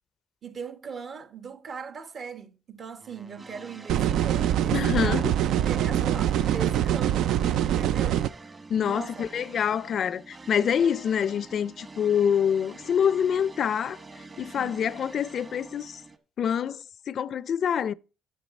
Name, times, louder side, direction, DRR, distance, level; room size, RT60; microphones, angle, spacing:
voice 1, 0.4-5.2 5.6-7.3 7.6-8.3 8.8-9.2 14.4-14.9, right 6 dB, 55° right, 1.2 m, -39 dB
sound 1, 3.0-16.2, right 3 dB, 35° right, 1.4 m, -46 dB
sound 2, 3.9-8.3, right 11 dB, 85° right, 0.4 m, -24 dB
voice 2, 4.7-5.3 8.7-14.0 14.4-16.0 16.4-17.9, left 8 dB, 60° left, 0.4 m, -26 dB
10.0 x 7.6 x 4.1 m
cardioid pair, 90°, 0 cm